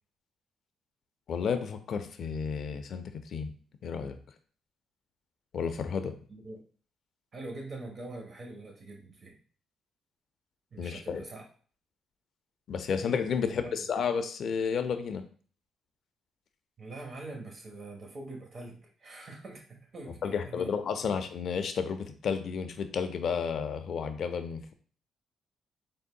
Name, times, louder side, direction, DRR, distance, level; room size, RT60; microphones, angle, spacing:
voice 1, 1.3-3.0 3.3-3.5 3.8-4.2 5.5-6.1 10.8-11.2 12.7-15.2 20.2-24.7, left 6 dB, 60° left, 8 dB, 0.4 m, -32 dB
voice 2, 6.3-6.6 7.3-9.4 10.7-11.4 13.4-13.8 16.8-20.7 21.0-21.1, right 2 dB, 45° right, 1 dB, 1.2 m, -44 dB
3.8 x 3.5 x 2.3 m, 0.43 s
cardioid pair, 90°, 0 cm